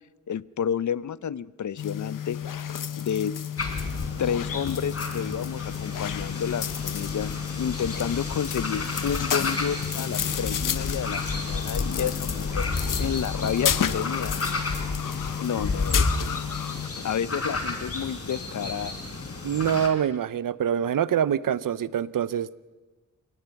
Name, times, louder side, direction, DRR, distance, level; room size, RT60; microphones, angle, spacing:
voice 1, 0.3-2.4 3.0-3.4 4.2-12.7 13.0-14.6 15.4-16.2 16.9-19.0, left 8 dB, 65° left, 19 dB, 0.6 m, -30 dB
sound 1, 1.8-16.9, left 9 dB, 85° left, 1.0 m, -32 dB
sound 2, 3.6-19.9, left 3 dB, 50° left, 3.8 m, -31 dB
voice 2, 19.4-22.5, right 9 dB, 90° right, 18 dB, 0.7 m, -25 dB
29.5 x 18.0 x 5.9 m, 1.2 s
wide cardioid pair, 85°, 32 cm